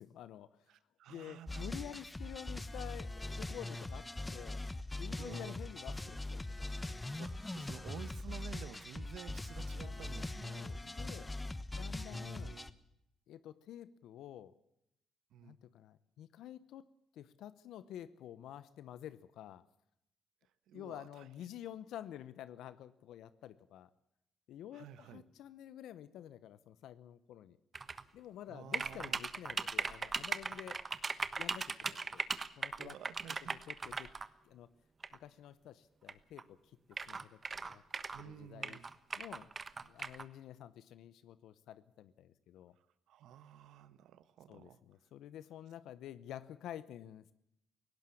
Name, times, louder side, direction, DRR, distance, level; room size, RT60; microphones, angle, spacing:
voice 1, 0.0-0.6 1.1-4.6 4.9-7.0 7.5-7.9 9.8-10.0 10.6-11.3 11.7-12.6 13.3-14.5 15.4-19.7 20.7-23.9 24.5-27.6 28.1-30.8 31.3-32.3 32.6-32.9 33.7-34.1 34.4-34.7 35.1-37.8 38.2-38.8 39.2-39.5 39.8-42.7 44.5-47.3, left 11 dB, 80° left, 15 dB, 0.9 m, -50 dB
voice 2, 0.7-1.9 5.2-5.5 7.2-10.9 12.0-12.7 15.3-15.6 20.7-21.3 24.7-25.2 28.5-29.2 32.8-33.6 38.1-38.9 43.1-44.8, right 10 dB, 80° right, 14 dB, 1.3 m, -52 dB
sound 1, 1.5-12.7, left 2 dB, 15° left, 1.2 m, -42 dB
sound 2, 27.7-28.0 28.7-34.3 35.0-35.2 36.1-36.2 36.4-36.5 36.9-38.2 38.6-40.2, right 4 dB, 35° right, 1.3 m, -38 dB
18.5 x 17.0 x 8.4 m, 0.80 s
cardioid pair, 90°, 0 cm